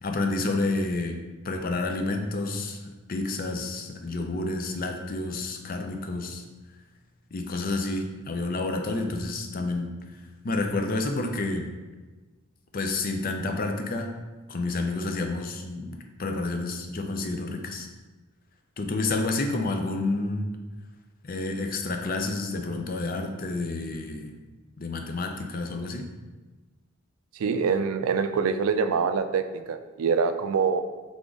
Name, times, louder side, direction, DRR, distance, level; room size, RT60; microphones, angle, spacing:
voice 1, 0.0-1.2 1.4-6.4 7.3-9.9 10.4-11.7 12.7-14.1 14.5-17.9 18.8-20.5 21.2-24.4 24.8-26.1, left 2 dB, 45° left, 4 dB, 0.5 m, -29 dB
voice 2, 27.3-30.8, right 5 dB, 85° right, 9 dB, 0.4 m, -25 dB
3.6 x 3.5 x 3.8 m, 1.2 s
head